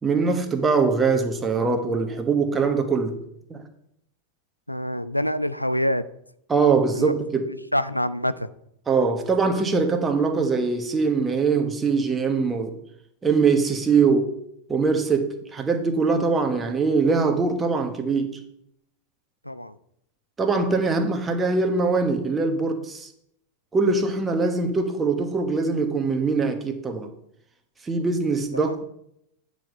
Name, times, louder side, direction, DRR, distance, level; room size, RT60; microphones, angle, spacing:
voice 1, 0.0-3.2 3.5-3.6 6.5-7.5 8.9-12.8 13.2-14.3 14.7-18.4 20.4-23.1 23.7-27.1 27.8-28.9, right 4 dB, 15° right, 1.2 m, -22 dB
voice 2, 4.7-6.0 6.9-7.1 7.7-8.5 19.4-19.8 28.5-28.7, equal, 90° left, 0.3 m, -26 dB
9.2 x 5.0 x 5.4 m
figure-of-eight pair, 90°, 0 cm